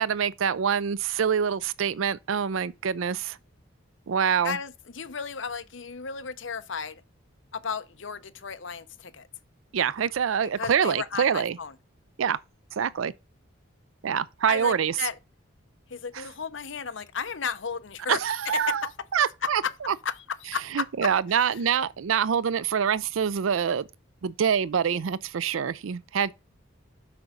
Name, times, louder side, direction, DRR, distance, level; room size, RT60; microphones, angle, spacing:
voice 1, 0.0-3.4 4.1-4.6 9.7-11.6 12.2-12.4 12.8-13.1 14.0-14.9 18.1-19.6 19.9-20.0 20.7-23.8 24.2-26.3, right 7 dB, 80° right, 0.4 m, -25 dB
voice 2, 4.4-7.0 7.5-9.3 10.5-11.7 14.5-15.1 15.9-18.2 18.4-18.9 19.4-19.7 20.0-21.1, left 6 dB, 70° left, 0.8 m, -33 dB
7.8 x 5.9 x 3.8 m
head